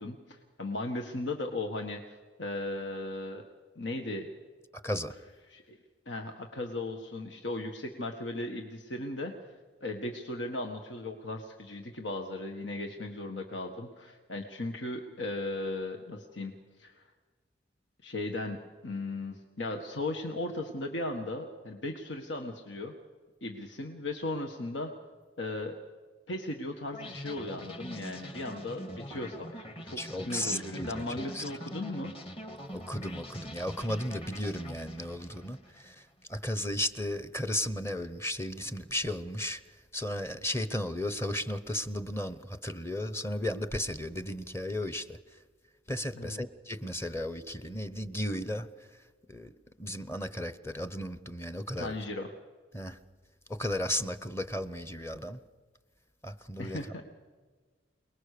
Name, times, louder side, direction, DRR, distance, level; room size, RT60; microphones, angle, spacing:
voice 1, 0.0-3.4 3.7-4.3 5.5-5.8 6.0-9.5 9.8-17.1 18.0-22.9 23.4-24.9 25.4-25.8 26.3-32.1 46.1-46.4 51.8-52.3 56.6-57.0, left 2 dB, 85° left, 3 dB, 1.7 m, -37 dB
voice 2, 4.8-5.1 30.0-31.4 32.7-39.6 39.9-45.4 45.9-48.9 49.3-52.0 52.7-53.0 53.5-55.4 56.2-56.8, left 1 dB, 15° left, 13 dB, 0.8 m, -35 dB
sound 1, 26.9-36.0, equal, 30° left, 2.0 m, -43 dB
28.0 x 20.0 x 6.8 m, 1.5 s
head